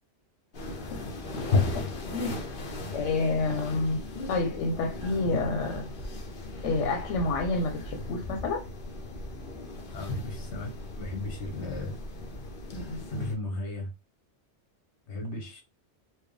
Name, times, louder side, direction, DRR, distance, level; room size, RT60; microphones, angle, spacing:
sound 1, 0.5-13.3, left 2 dB, 50° left, 0.9 m, -35 dB
voice 1, 2.1-2.6 2.9-4.0 4.3-5.8 6.6-8.6, left 3 dB, 85° left, 1.0 m, -29 dB
voice 2, 9.9-12.0 13.1-13.9 15.1-15.6, left 2 dB, 70° left, 1.4 m, -36 dB
4.5 x 2.1 x 3.2 m
omnidirectional pair, 1.2 m